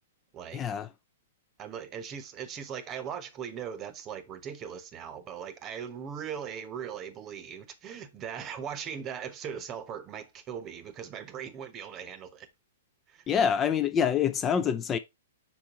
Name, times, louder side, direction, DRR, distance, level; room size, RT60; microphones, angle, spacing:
voice 1, 0.5-0.9 13.3-15.0, left 7 dB, 20° left, 0.5 m, -26 dB
voice 2, 1.6-12.5 13.1-13.3, right 8 dB, 30° right, 1.0 m, -39 dB
5.3 x 4.5 x 4.2 m
figure-of-eight pair, 115°, 0 cm